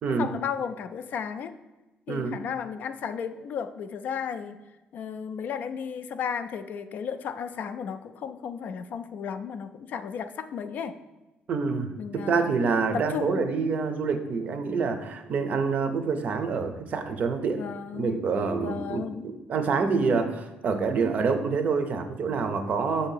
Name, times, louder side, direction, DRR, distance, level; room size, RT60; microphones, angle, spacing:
voice 1, 0.2-1.5 2.1-4.6 4.9-11.0 12.0-12.5 12.9-13.5 17.6-18.2 18.6-19.3, left 7 dB, 50° left, 10 dB, 0.3 m, -34 dB
voice 2, 11.5-17.7 17.9-19.0 19.5-23.1, right 5 dB, 45° right, 8 dB, 0.5 m, -27 dB
6.5 x 2.7 x 5.5 m, 1.1 s
cardioid pair, 155°, 4 cm